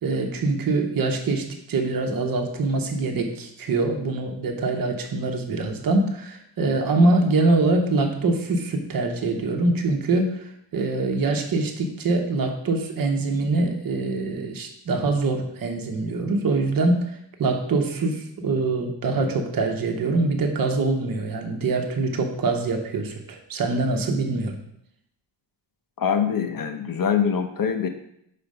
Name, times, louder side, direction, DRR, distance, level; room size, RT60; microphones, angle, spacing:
voice 1, 0.0-17.0 17.4-24.5, right 3 dB, 45° right, 3 dB, 1.0 m, -24 dB
voice 2, 26.0-27.9, left 7 dB, 45° left, 7 dB, 0.8 m, -24 dB
5.0 x 4.3 x 5.4 m, 0.75 s
cardioid pair, 115°, 46 cm